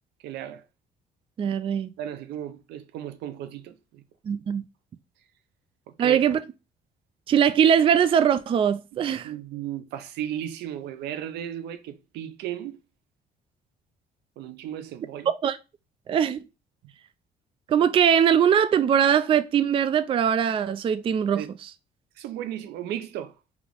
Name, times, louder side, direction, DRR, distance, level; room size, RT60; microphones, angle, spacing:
voice 1, 0.2-0.6 2.0-4.0 5.9-6.2 8.9-12.8 14.4-15.3 16.8-16.9 21.3-21.5 22.2-23.4, right 11 dB, 80° right, 0.6 m, -35 dB
voice 2, 1.4-1.9 4.2-4.6 6.0-6.4 7.3-9.3 15.4-15.6 16.1-16.4 17.7-21.4, right 8 dB, 30° right, 0.3 m, -21 dB
3.9 x 2.9 x 3.6 m
cardioid pair, 110°, 17 cm